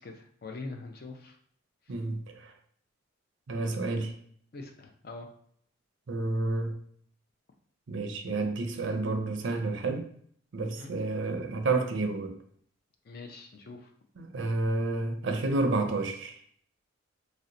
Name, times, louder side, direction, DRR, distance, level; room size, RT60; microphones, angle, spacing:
voice 1, 0.0-1.4 1.9-2.0 4.5-5.3 10.6-10.9 13.0-13.9, left 3 dB, 50° left, 4 dB, 0.4 m, -43 dB
voice 2, 1.9-2.5 3.5-4.1 6.1-6.8 7.9-10.0 10.5-12.4 14.2-16.4, right 3 dB, 60° right, 5 dB, 0.4 m, -30 dB
2.7 x 2.1 x 3.7 m, 0.62 s
head